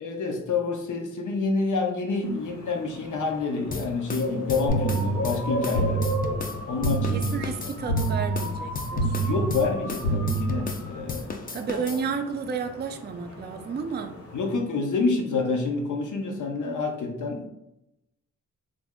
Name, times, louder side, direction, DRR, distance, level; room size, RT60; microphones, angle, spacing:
voice 1, 0.0-6.0 6.7-7.7 9.2-12.0 14.3-17.5, left 3 dB, 75° left, 3 dB, 0.7 m, -28 dB
sound 1, 2.2-14.6, equal, 50° left, 0.8 m, -38 dB
sound 2, 3.7-6.6 6.8-10.8 11.1-12.0, left 4 dB, 30° left, 0.4 m, -34 dB
sound 3, 4.7-11.0, right 2 dB, 90° left, 1.1 m, -28 dB
voice 2, 7.1-9.2 11.5-14.2, right 5 dB, 35° right, 6 dB, 0.4 m, -32 dB
3.4 x 2.1 x 3.5 m, 0.86 s
cardioid pair, 75°, 31 cm